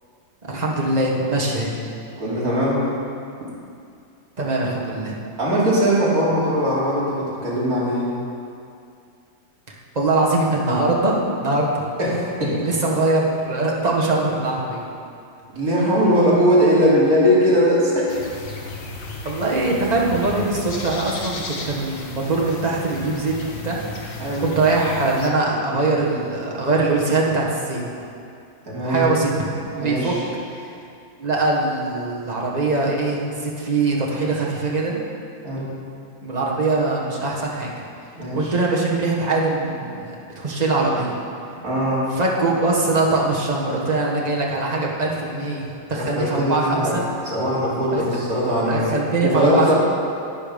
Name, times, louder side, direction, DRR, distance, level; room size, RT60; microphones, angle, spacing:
voice 1, 0.4-1.8 4.4-5.2 9.9-11.9 12.6-14.8 19.2-24.1 24.4-27.8 28.8-29.3 29.7-30.1 30.5-30.6 31.2-35.0 36.2-37.7 38.3-41.2 42.1-47.0 47.9-48.0 48.6-49.7, right 2 dB, 25° right, -3 dB, 1.5 m, -22 dB
voice 2, 2.2-2.8 5.4-8.1 12.0-12.6 15.5-18.2 24.2-24.4 28.6-29.1 29.8-30.2 35.4-35.7 38.2-38.5 41.6-42.1 45.9-47.0 47.2-48.9 49.2-49.7, equal, 55° right, -8 dB, 3.4 m, -20 dB
sound 1, 18.1-25.3, left 3 dB, 50° left, 1.4 m, -34 dB
11.5 x 8.9 x 5.2 m, 2.5 s
omnidirectional pair, 1.9 m